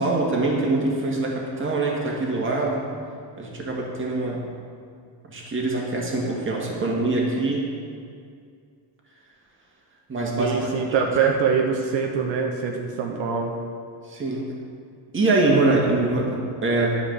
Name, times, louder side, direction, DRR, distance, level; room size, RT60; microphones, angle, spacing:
voice 1, 0.0-2.8 3.4-4.4 5.3-7.6 10.1-10.7 14.1-14.5 15.1-17.0, right 2 dB, 25° right, -2 dB, 1.9 m, -23 dB
voice 2, 10.4-13.5, right 6 dB, 75° right, 1 dB, 1.1 m, -24 dB
10.5 x 5.2 x 6.6 m, 2.2 s
cardioid pair, 125°, 45 cm